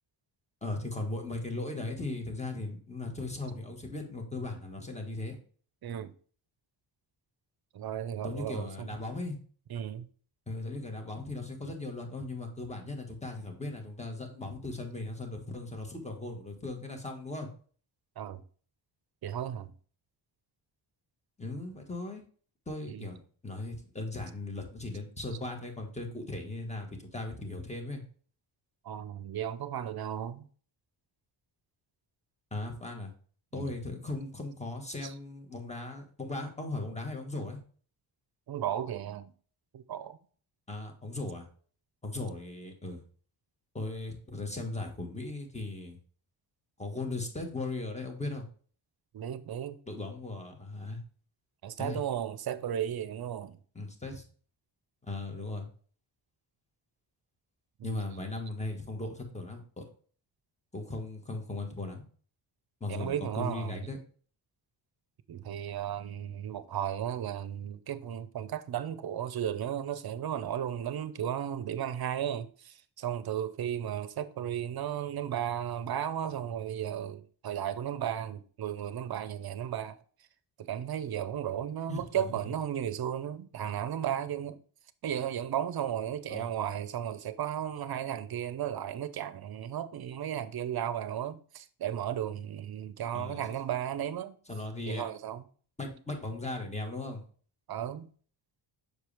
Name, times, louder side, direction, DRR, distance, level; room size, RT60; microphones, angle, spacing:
voice 1, 0.6-5.4 8.2-9.4 10.5-17.5 21.4-22.2 22.7-28.0 32.5-33.1 33.5-37.6 40.7-41.5 42.0-43.0 43.7-46.0 46.8-48.4 49.9-51.0 51.8-52.0 53.7-54.2 55.0-55.7 57.8-59.8 60.7-62.0 62.8-64.0 81.9-82.4 86.3-86.5 93.1-93.4 94.5-95.0 95.8-97.2, left 2 dB, 15° left, 1.5 m, -38 dB
voice 2, 5.8-6.1 7.7-9.0 9.7-10.1 18.2-18.4 19.2-19.7 22.9-23.1 25.3-25.4 28.8-30.5 33.5-33.7 35.0-35.1 38.5-39.3 39.7-40.2 49.1-49.8 51.6-53.6 57.8-58.0 62.9-63.9 65.3-80.0 80.6-84.6 85.0-94.4 94.8-95.5 97.7-98.1, right 10 dB, 50° right, 0.6 m, -35 dB
6.5 x 4.7 x 3.4 m
cardioid pair, 100°, 48 cm